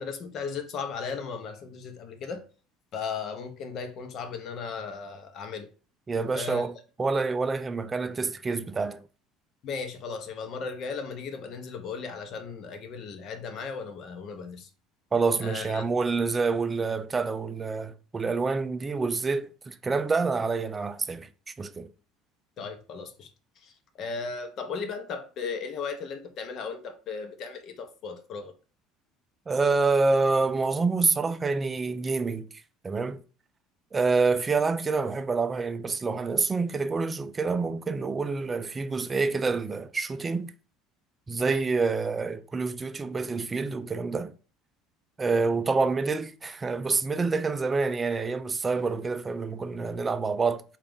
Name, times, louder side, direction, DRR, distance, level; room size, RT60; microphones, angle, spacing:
voice 1, 0.0-2.4 2.9-5.7 6.3-6.7 9.6-14.7 15.4-15.8 22.6-23.3 23.6-28.5 41.4-41.6, left 5 dB, 50° left, 0.7 m, -36 dB
voice 2, 6.1-9.0 15.1-21.3 21.6-21.9 29.5-32.5 32.8-33.2 33.9-40.5 41.3-44.3 45.2-50.6, right 4 dB, 20° right, 0.3 m, -27 dB
3.8 x 2.4 x 3.5 m
supercardioid pair, 115°, 0 cm